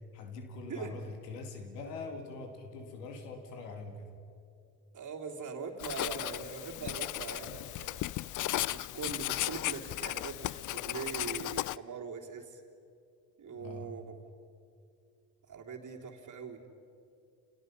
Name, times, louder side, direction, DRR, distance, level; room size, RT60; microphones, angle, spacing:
voice 1, 0.1-4.1 13.5-13.9, left 3 dB, 75° left, 6 dB, 2.4 m, -43 dB
voice 2, 4.9-12.6 13.4-14.0 15.5-16.6, right 5 dB, 40° right, 1 dB, 3.4 m, -42 dB
Writing, 5.8-11.8, left 16 dB, 40° left, 0.5 m, -35 dB
29.5 x 27.0 x 5.5 m, 2.5 s
figure-of-eight pair, 50°, 49 cm